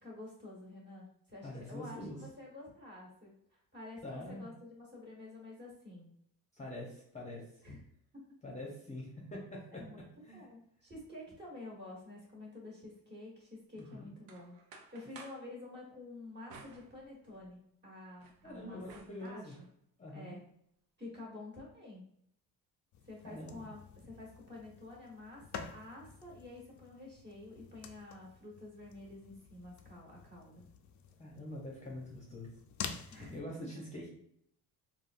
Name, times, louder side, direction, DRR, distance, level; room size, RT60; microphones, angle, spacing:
voice 1, 0.0-6.1 7.6-7.8 8.1-8.2 9.8-10.1 10.3-19.7 20.1-20.4 21.0-22.1 23.0-30.6 33.1-33.7, left 2 dB, 30° right, -4 dB, 1.4 m, -49 dB
voice 2, 1.4-2.2 4.0-4.5 6.5-7.4 8.4-9.8 10.2-10.5 13.8-14.1 18.4-19.6 20.0-20.4 23.2-23.6 31.2-32.5 33.0-34.1, left 1 dB, 20° left, -3 dB, 0.8 m, -45 dB
sound 1, 13.8-15.5 16.5-17.5 18.0-19.7, right 4 dB, 70° right, 0.7 m, -56 dB
sound 2, 22.9-33.4, left 7 dB, 50° left, 0.4 m, -49 dB
3.5 x 2.4 x 2.5 m, 0.68 s
cardioid pair, 115°, 38 cm